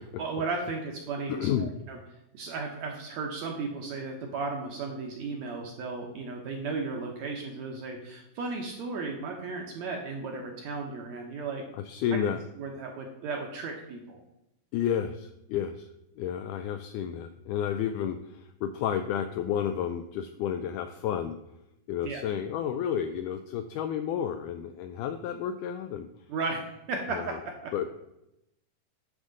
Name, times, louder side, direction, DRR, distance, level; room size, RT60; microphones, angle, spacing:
voice 1, 0.2-2.0 2.3-11.6 12.6-14.2 22.0-22.2 26.3-27.2 27.4-27.7, right 4 dB, 70° right, 1 dB, 1.8 m, -35 dB
voice 2, 1.3-1.8 11.9-12.4 14.7-15.9 16.2-18.2 18.6-21.4 21.9-26.1 27.2-27.3 27.7-27.9, left 9 dB, 85° left, 8 dB, 1.8 m, -31 dB
9.9 x 3.7 x 6.4 m, 0.85 s
omnidirectional pair, 4.1 m